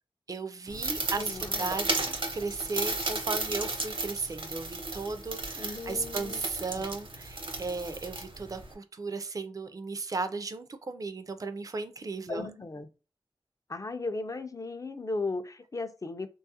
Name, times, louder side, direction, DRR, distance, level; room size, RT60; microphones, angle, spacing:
voice 1, 0.3-12.5, right 3 dB, 40° right, 0.3 m, -36 dB
sound 1, 0.7-8.7, right 2 dB, 70° right, 0.7 m, -34 dB
voice 2, 1.2-1.7 5.5-6.4 6.7-6.8 12.3-12.9 13.7-16.3, left 3 dB, 40° left, 0.4 m, -36 dB
3.4 x 2.3 x 2.7 m
wide cardioid pair, 75°, 9 cm